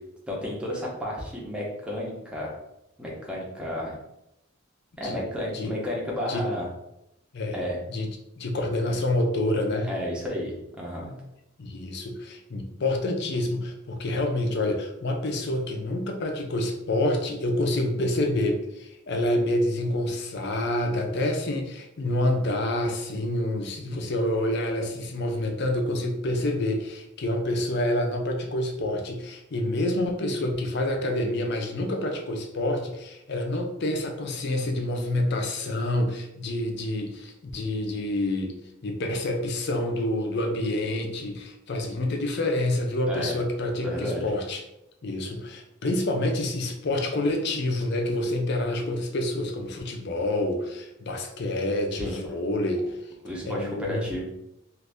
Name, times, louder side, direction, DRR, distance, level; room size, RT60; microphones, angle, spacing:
voice 1, 0.3-2.6 3.0-3.9 5.0-6.7 7.5-7.8 9.9-11.1 43.1-43.3 43.8-44.3 51.9-52.2 53.2-54.3, left 1 dB, 5° right, -4 dB, 0.7 m, -32 dB
voice 2, 7.3-9.9 11.6-38.5 38.8-44.6 45.0-52.9 53.4-54.1, left 1 dB, 55° left, 3 dB, 0.5 m, -27 dB
2.6 x 2.6 x 3.4 m, 0.86 s
head